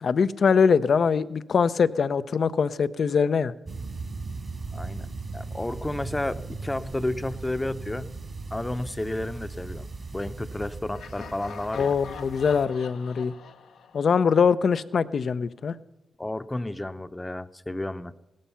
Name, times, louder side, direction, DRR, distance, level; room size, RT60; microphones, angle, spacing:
voice 1, 0.0-3.5 11.8-13.3 13.9-15.7, left 6 dB, 65° left, 14 dB, 0.5 m, -23 dB
sound 1, 3.7-12.7, right 3 dB, 50° right, 2.1 m, -38 dB
voice 2, 4.7-8.1 8.5-11.9 16.2-18.1, left 1 dB, 20° left, 11 dB, 0.8 m, -32 dB
Laughter, 10.9-14.8, left 6 dB, 85° left, 0.9 m, -44 dB
17.0 x 13.0 x 5.7 m, 0.96 s
supercardioid pair, 45°, 0 cm